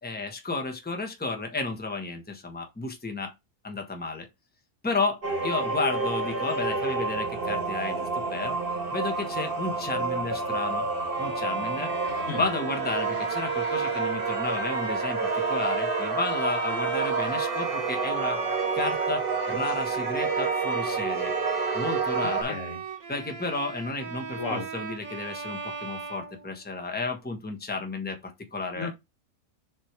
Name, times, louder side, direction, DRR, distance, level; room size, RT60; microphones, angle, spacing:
voice 1, 0.0-3.3 3.6-4.3 4.8-8.5 8.9-10.8 11.2-11.9 12.3-18.4 18.7-21.3 21.7-22.6 23.1-28.9, left 3 dB, 5° left, 1.2 m, -32 dB
sound 1, 5.2-22.4, right 4 dB, 45° right, 1.5 m, -29 dB
Bowed string instrument, 11.1-27.0, right 4 dB, 75° right, 1.6 m, -38 dB
voice 2, 22.2-22.8 24.4-24.7 28.8-28.9, left 4 dB, 65° left, 1.7 m, -33 dB
7.5 x 3.2 x 4.7 m
omnidirectional pair, 1.4 m